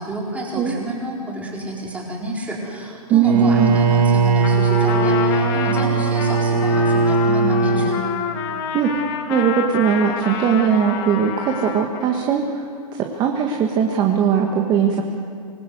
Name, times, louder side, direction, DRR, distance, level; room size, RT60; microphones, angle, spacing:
voice 1, 0.0-8.0, right 1 dB, 5° right, -2 dB, 4.4 m, -29 dB
voice 2, 3.1-3.7 8.7-8.9 9.3-12.6 13.0-15.0, right 7 dB, 20° right, 3 dB, 1.7 m, -19 dB
Bowed string instrument, 3.2-8.0, right 4 dB, 90° right, 5.0 m, -19 dB
Trumpet, 4.4-12.2, left 7 dB, 40° left, 2.2 m, -29 dB
25.5 x 20.0 x 8.0 m, 2.4 s
hypercardioid pair, 150°, 20 cm